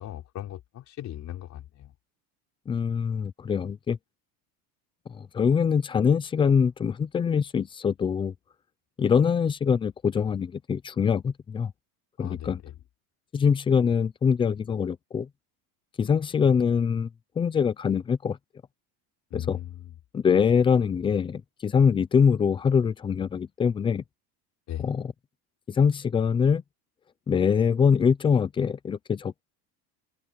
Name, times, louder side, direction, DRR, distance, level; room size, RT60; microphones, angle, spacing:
voice 1, 0.0-1.9 12.2-12.7 19.3-19.9 24.7-24.9, left 12 dB, 40° left, 4.7 m, -37 dB
voice 2, 2.7-4.0 5.1-8.3 9.0-11.7 12.2-12.6 13.3-15.3 16.0-17.1 17.4-18.4 19.3-19.6 20.1-24.0 24.8-25.1 25.7-26.6 27.3-29.4, left 6 dB, 15° left, 0.3 m, -24 dB
open air
cardioid pair, 165°, 42 cm